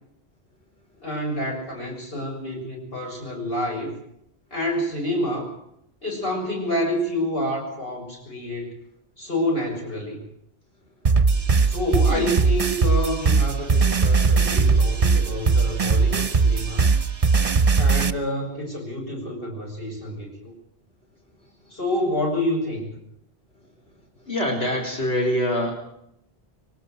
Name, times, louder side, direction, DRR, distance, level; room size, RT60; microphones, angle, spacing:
voice 1, 1.0-3.9 4.5-5.5 6.0-8.7 9.2-10.2 11.6-16.8 17.8-20.5 21.7-22.9, left 1 dB, 65° left, -1 dB, 7.4 m, -28 dB
sound 1, 11.0-18.1, right 4 dB, 35° right, 0.9 m, -19 dB
voice 2, 24.3-25.7, left 1 dB, 90° left, -2 dB, 4.4 m, -24 dB
23.5 x 19.0 x 6.7 m, 0.77 s
omnidirectional pair, 1.0 m